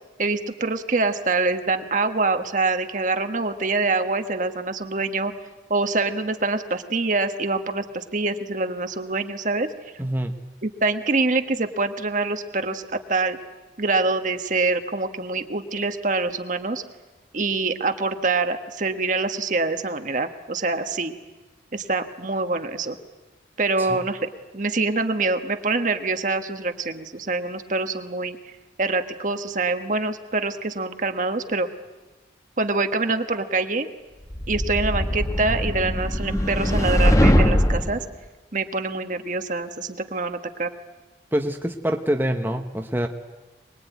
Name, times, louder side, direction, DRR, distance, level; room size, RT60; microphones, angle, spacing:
voice 1, 0.2-5.3 5.7-9.7 10.6-13.4 13.8-16.8 17.3-21.1 21.7-23.0 23.6-24.2 24.5-28.5 28.8-31.7 32.6-33.9 34.5-38.0 38.5-40.7, right 3 dB, 45° right, 7 dB, 1.4 m, -25 dB
voice 2, 10.0-10.3 23.8-24.0 41.3-43.1, equal, 10° right, 3 dB, 1.1 m, -25 dB
sound 1, 34.3-38.0, equal, 20° left, 1.1 m, -21 dB
24.5 x 21.0 x 9.4 m, 1.2 s
head